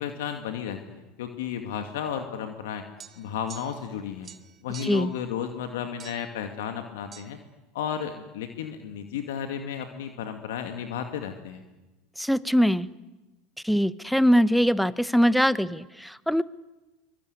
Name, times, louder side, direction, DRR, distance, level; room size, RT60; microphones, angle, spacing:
voice 1, 0.0-2.8 3.2-4.3 4.6-7.4 7.7-11.6, left 8 dB, 80° left, 6 dB, 2.3 m, -33 dB
sound 1, 3.0-4.0 4.2-5.1 6.0-6.4 7.1-7.3, right 7 dB, 30° right, 1.7 m, -46 dB
voice 2, 4.8-5.1 12.2-12.9 13.6-16.4, equal, ahead, 17 dB, 1.0 m, -22 dB
24.0 x 23.5 x 9.7 m, 1.1 s
hypercardioid pair, 100°, 0 cm